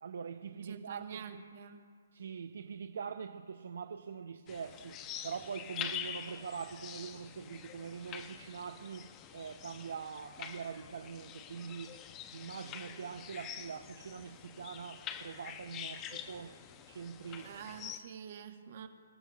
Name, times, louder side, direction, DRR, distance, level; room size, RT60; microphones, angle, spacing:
voice 1, 0.0-1.4 2.1-12.0 12.3-16.6 16.9-17.6, right 6 dB, 70° right, 0.6 m, -43 dB
voice 2, 0.5-1.9 17.4-18.9, right 8 dB, 50° right, 1.2 m, -47 dB
sound 1, 4.5-18.0, left 9 dB, 20° left, 0.7 m, -46 dB
25.0 x 12.5 x 2.3 m
hypercardioid pair, 150°, 0 cm